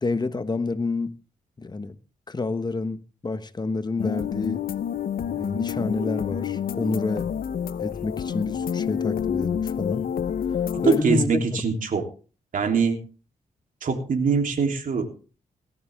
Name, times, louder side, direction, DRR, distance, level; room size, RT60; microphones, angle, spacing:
voice 1, 0.0-1.1 1.6-2.0 2.3-4.6 5.3-7.3 7.8-10.1 10.8-11.4, left 3 dB, 30° left, 1.2 m, -28 dB
sound 1, 4.0-11.0, left 8 dB, 75° left, 0.8 m, -28 dB
voice 2, 10.7-12.0 12.5-13.0 13.8-15.1, right 5 dB, 65° right, 3.5 m, -23 dB
18.5 x 12.5 x 3.6 m
cardioid pair, 95°, 15 cm